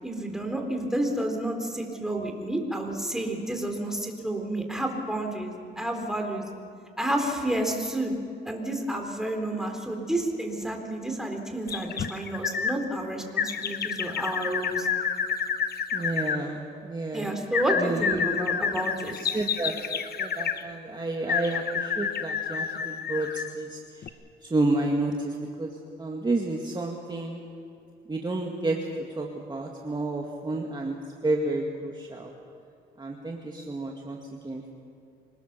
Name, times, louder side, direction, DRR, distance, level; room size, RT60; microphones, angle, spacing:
voice 1, 0.0-6.5 7.0-8.1 8.4-14.9 17.1-19.2, right 1 dB, ahead, 2 dB, 3.8 m, -30 dB
sound 1, 11.7-12.8 13.4-16.4 17.5-20.6 21.3-23.5 24.0-24.1, left 7 dB, 50° left, 1.0 m, -29 dB
voice 2, 15.9-17.3 17.8-18.3 19.1-19.7 20.2-23.8 24.5-25.7 26.0-27.4 28.1-28.8 29.2-31.0 31.2-32.3 33.0-34.2 34.4-34.7, right 2 dB, 20° right, 0 dB, 2.0 m, -30 dB
26.0 x 19.5 x 6.8 m, 2.5 s
cardioid pair, 90°, 20 cm